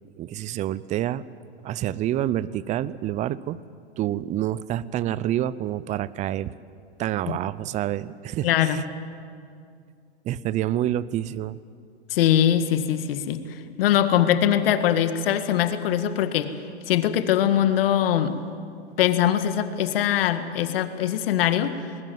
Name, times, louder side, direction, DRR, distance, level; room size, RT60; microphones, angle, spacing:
voice 1, 0.2-1.3 1.6-3.6 4.0-6.5 7.0-8.8 10.2-11.6, right 12 dB, 20° right, 19 dB, 0.6 m, -28 dB
voice 2, 8.4-8.8 12.1-16.5 16.9-18.3 19.0-21.8, left 10 dB, 60° left, 10 dB, 1.9 m, -22 dB
20.5 x 20.5 x 9.4 m, 2.3 s
hypercardioid pair, 120°, 33 cm